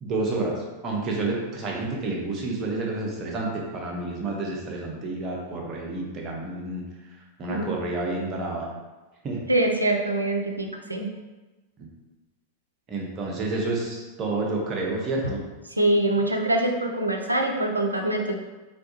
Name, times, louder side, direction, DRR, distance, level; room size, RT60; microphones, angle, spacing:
voice 1, 0.0-6.8 7.1-8.7 9.2-9.5 12.9-15.4, right 2 dB, 30° right, -2 dB, 0.7 m, -29 dB
voice 2, 9.5-11.1 15.7-18.3, right 1 dB, 85° right, 3 dB, 0.3 m, -24 dB
3.5 x 2.2 x 2.7 m, 1.2 s
figure-of-eight pair, 90°, 0 cm